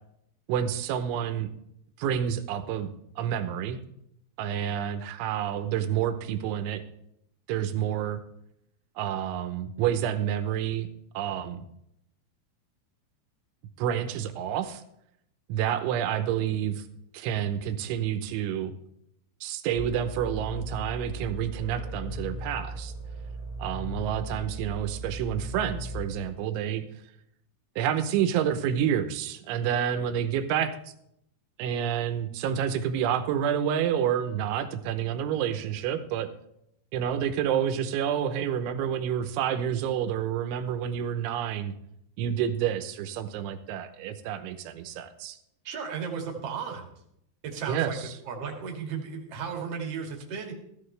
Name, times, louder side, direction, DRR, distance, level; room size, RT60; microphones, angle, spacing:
voice 1, 0.5-1.5 2.0-2.9 3.2-3.8 4.4-6.8 7.5-8.2 9.0-10.9 11.1-11.6 13.8-14.8 15.5-16.8 17.1-18.7 19.4-22.9 23.6-26.8 27.8-30.7 31.6-36.3 36.9-41.7 42.2-45.4 47.7-47.9, right 9 dB, 80° right, 9 dB, 3.2 m, -29 dB
sound 1, 19.8-26.0, right 1 dB, 80° left, 7.1 m, -37 dB
voice 2, 45.6-46.9 47.4-48.0 48.3-50.5, right 6 dB, 50° right, 1 dB, 1.9 m, -34 dB
14.5 x 13.5 x 3.3 m, 0.76 s
omnidirectional pair, 5.4 m